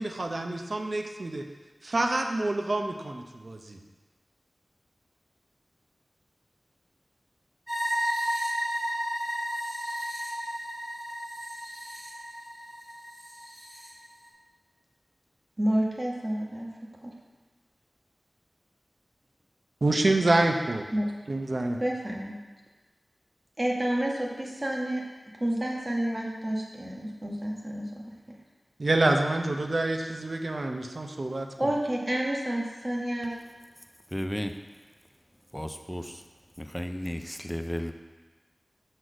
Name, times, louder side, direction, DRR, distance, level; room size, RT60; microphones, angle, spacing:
voice 1, 0.0-1.5 1.8-3.8 19.8-20.9 21.3-21.8 28.8-31.7, right 2 dB, 60° right, 4 dB, 0.7 m, -27 dB
sound 1, 7.7-13.9, equal, 10° right, 1.8 m, -33 dB
voice 2, 15.6-16.7 17.0-17.1 20.9-21.1 21.8-22.4 23.6-25.1 25.4-28.0 31.6-33.3, right 1 dB, 30° right, -2 dB, 1.4 m, -29 dB
voice 3, 34.1-34.6 35.5-36.2 36.6-37.9, equal, 5° left, 7 dB, 0.4 m, -33 dB
6.3 x 4.0 x 6.2 m, 1.3 s
wide cardioid pair, 65°, 0 cm